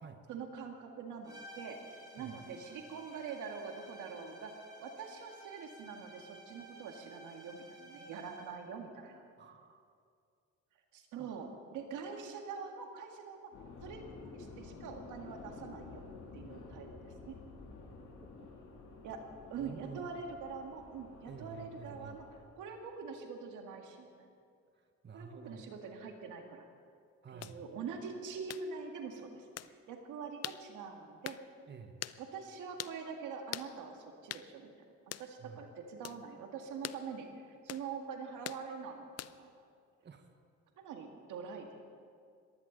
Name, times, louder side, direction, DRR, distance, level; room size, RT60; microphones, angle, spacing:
voice 1, 0.3-9.2 10.9-13.5 13.8-14.0 14.3-16.0 16.3-17.4 19.0-19.2 19.5-22.2 22.6-24.3 25.1-26.7 27.3-31.4 32.2-34.7 35.2-39.5 40.8-41.8, right 5 dB, 90° right, 3 dB, 1.8 m, -44 dB
sound 1, 1.2-8.7, right 1 dB, 15° right, 3.5 m, -54 dB
voice 2, 9.4-9.9 11.2-11.3 18.4-18.5 19.6-20.1 21.3-22.2 24.7-25.7 27.2-27.6 31.7-32.0 35.4-35.6 40.0-40.4, right 5 dB, 35° right, 6 dB, 1.2 m, -50 dB
sound 2, 13.5-22.4, left 3 dB, 75° left, 2.8 m, -51 dB
sound 3, 27.4-27.6 28.5-28.7 29.6-29.7 30.4-30.6 31.2-31.4 32.0-32.2 32.8-33.0 33.5-33.7 34.3-34.5 35.1-35.3 36.0-36.2 36.8-37.0 37.7-37.9 38.4-38.6 39.2-39.5, left 12 dB, 55° left, 0.5 m, -42 dB
21.5 x 15.5 x 3.9 m, 2.3 s
cardioid pair, 90°, 30 cm